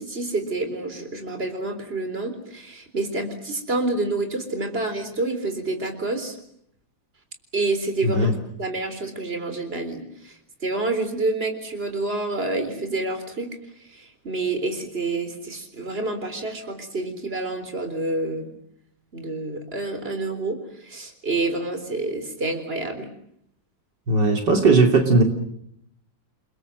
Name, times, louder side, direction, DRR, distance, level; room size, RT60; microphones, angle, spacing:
voice 1, 0.0-6.4 7.5-8.3 8.6-13.5 13.9-18.5 19.1-23.1, right 2 dB, 30° right, 7 dB, 4.1 m, -28 dB
voice 2, 24.1-25.2, right 3 dB, 60° right, 4 dB, 3.5 m, -17 dB
29.5 x 21.5 x 7.8 m, 0.72 s
omnidirectional pair, 2.1 m